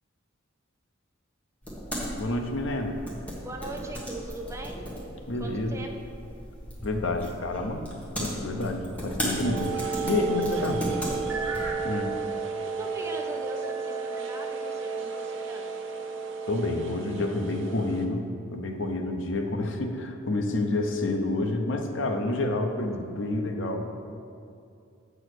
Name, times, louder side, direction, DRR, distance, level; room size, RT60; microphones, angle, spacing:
sound 1, 1.6-11.7, equal, 5° left, 1.5 m, -36 dB
voice 1, 2.2-3.0 5.3-5.8 6.8-7.8 8.2-9.8 10.0-10.8 11.8-12.2 16.5-23.9, left 2 dB, 65° left, 4 dB, 0.7 m, -29 dB
voice 2, 3.4-4.9 5.4-5.9 10.6-11.5 12.8-15.7, right 1 dB, 15° right, 1 dB, 0.6 m, -40 dB
sound 2, 9.4-18.1, right 5 dB, 65° right, 0.7 m, -33 dB
7.7 x 4.6 x 6.2 m, 2.4 s
head